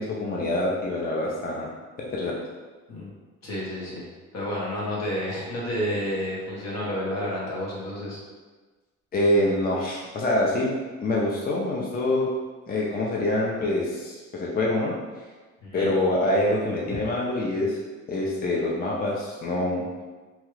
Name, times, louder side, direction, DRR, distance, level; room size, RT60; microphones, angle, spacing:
voice 1, 0.0-1.7 2.0-2.4 9.1-10.7 11.0-12.3 12.7-15.0 15.7-17.8 18.1-19.9, left 1 dB, 30° left, -3 dB, 0.5 m, -25 dB
voice 2, 3.4-4.1 4.3-8.2 15.6-15.9, equal, 60° left, -5 dB, 1.2 m, -30 dB
2.9 x 2.3 x 3.1 m, 1.3 s
cardioid pair, 90°, 30 cm